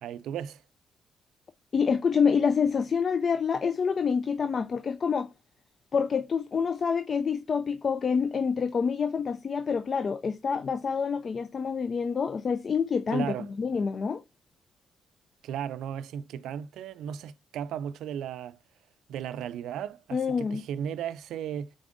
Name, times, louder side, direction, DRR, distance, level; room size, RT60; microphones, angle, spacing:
voice 1, 0.0-0.6 13.1-13.5 15.4-18.6 19.1-21.7, right 9 dB, 80° right, 0.3 m, -35 dB
voice 2, 1.7-5.3 5.9-13.3 13.6-14.2 20.1-20.6, left 6 dB, 45° left, 0.3 m, -27 dB
5.1 x 3.4 x 2.5 m
cardioid pair, 90°, 0 cm